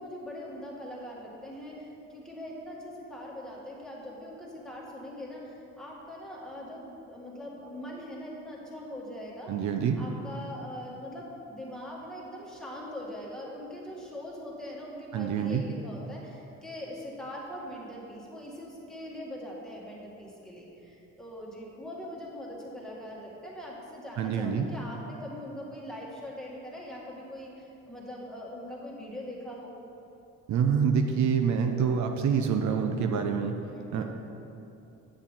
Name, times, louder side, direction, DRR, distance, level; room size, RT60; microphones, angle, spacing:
voice 1, 0.0-9.5 10.0-29.7 33.7-34.0, left 1 dB, ahead, -5 dB, 1.8 m, -42 dB
voice 2, 9.5-10.0 15.1-15.6 24.2-24.7 30.5-33.6 33.9-34.0, right 7 dB, 70° right, 4 dB, 0.6 m, -26 dB
8.6 x 7.3 x 3.6 m, 2.9 s
cardioid pair, 90°, 30 cm